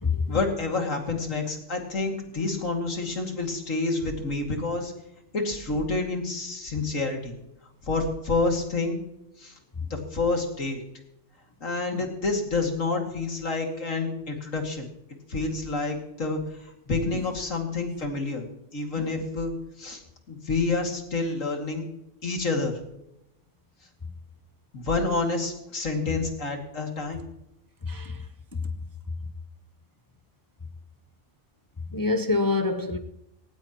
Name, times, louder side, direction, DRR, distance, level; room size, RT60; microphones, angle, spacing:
voice 1, 0.3-4.9 5.3-7.3 7.8-9.0 9.4-9.6 9.9-10.8 11.6-14.9 15.3-18.5 18.7-19.5 19.8-20.0 20.3-21.8 22.2-22.8 24.7-27.2, left 3 dB, 90° left, 2.9 m, -28 dB
voice 2, 27.8-28.3 28.5-28.7 31.9-33.0, left 3 dB, 20° left, 0.6 m, -27 dB
18.5 x 18.0 x 3.0 m
omnidirectional pair, 1.3 m